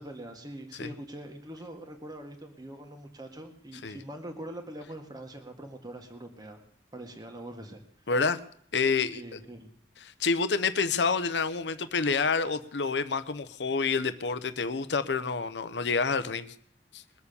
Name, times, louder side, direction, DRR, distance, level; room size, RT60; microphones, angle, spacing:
voice 1, 0.0-6.6 6.9-7.8 9.1-9.7, right 1 dB, 25° right, 4 dB, 1.8 m, -43 dB
voice 2, 8.1-8.4 8.7-9.4 10.0-16.5 16.9-17.0, left 4 dB, 80° left, 12 dB, 0.8 m, -28 dB
21.5 x 7.2 x 6.9 m, 0.64 s
head